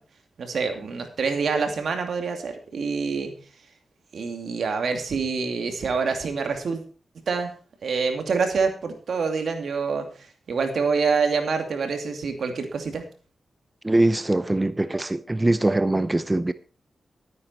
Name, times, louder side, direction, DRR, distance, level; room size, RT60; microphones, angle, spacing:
voice 1, 0.4-3.3 4.1-6.8 7.3-7.5 7.8-10.1 10.5-13.0, right 5 dB, 75° right, 6 dB, 2.5 m, -26 dB
voice 2, 13.8-16.5, right 2 dB, 25° right, 14 dB, 0.7 m, -22 dB
12.5 x 9.6 x 4.5 m, 0.39 s
cardioid pair, 50°, 0 cm